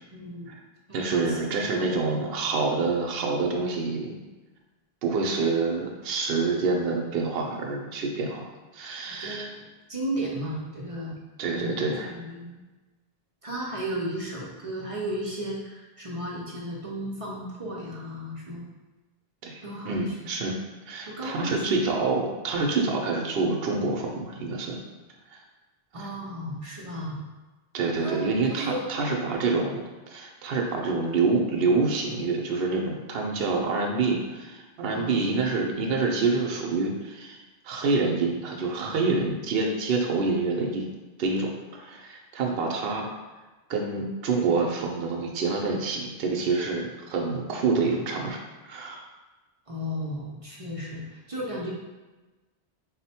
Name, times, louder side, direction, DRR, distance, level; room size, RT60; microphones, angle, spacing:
voice 1, 0.1-0.5 0.9-1.4 1.7-1.9 9.2-9.6 9.9-11.2 11.5-11.8 12.1-12.5 13.4-18.6 19.6-20.2 21.1-21.6 25.9-27.2 28.0-28.2 28.5-29.2 34.9-35.3 49.7-51.7, right 1 dB, 40° right, -4 dB, 0.6 m, -34 dB
voice 2, 0.9-4.2 5.0-8.4 8.7-9.5 11.4-12.1 19.4-20.5 20.8-24.8 25.3-25.4 25.9-26.1 27.7-37.4 37.6-40.8 41.2-43.1 43.7-48.4 48.6-49.0, right 3 dB, 70° right, 0 dB, 0.8 m, -27 dB
4.1 x 2.1 x 4.2 m, 1.2 s
omnidirectional pair, 1.1 m